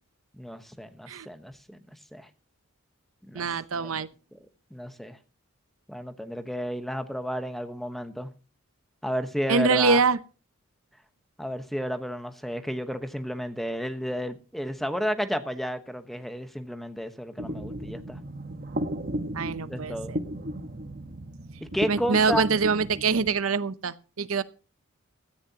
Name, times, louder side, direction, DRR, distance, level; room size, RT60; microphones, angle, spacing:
voice 1, 0.3-1.8 2.1-2.3 3.3-3.5 3.8-3.9 4.3-4.4 4.7-5.2 5.9-8.3 9.0-10.0 11.4-18.2 19.7-20.2 21.7-22.5, equal, ahead, 1.1 m, -32 dB
voice 2, 3.3-4.1 9.5-10.2 19.3-20.2 21.9-24.4, right 4 dB, 90° right, 0.8 m, -24 dB
sound 1, 17.4-23.3, equal, 45° right, 1.3 m, -35 dB
16.5 x 14.0 x 2.9 m
head